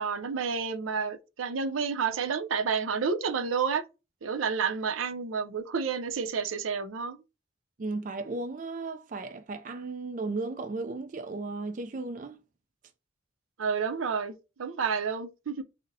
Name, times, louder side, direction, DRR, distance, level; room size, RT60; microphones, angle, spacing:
voice 1, 0.0-3.8 4.2-7.2 13.6-15.6, right 6 dB, 90° right, 0.6 m, -30 dB
voice 2, 7.8-12.4, right 3 dB, 40° right, 0.4 m, -35 dB
3.9 x 2.1 x 3.9 m
head